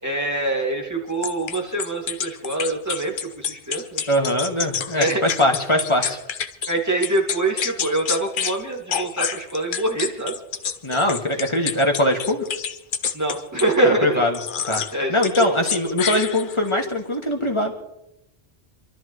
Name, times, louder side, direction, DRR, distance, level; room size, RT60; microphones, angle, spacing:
voice 1, 0.0-4.0 4.9-5.2 6.7-10.4 13.1-14.2 14.9-15.1 15.4-15.5, right 2 dB, 15° right, 0 dB, 2.3 m, -24 dB
sound 1, 1.2-6.7 7.0-8.6 8.9-13.8 14.3-14.9 15.2-16.7, left 7 dB, 55° left, 0.8 m, -28 dB
voice 2, 4.1-6.2 10.8-12.4 13.8-14.4 14.7-14.8 15.1-17.7, left 1 dB, 25° left, 1 dB, 1.9 m, -21 dB
28.0 x 12.5 x 3.2 m, 0.88 s
omnidirectional pair, 1.1 m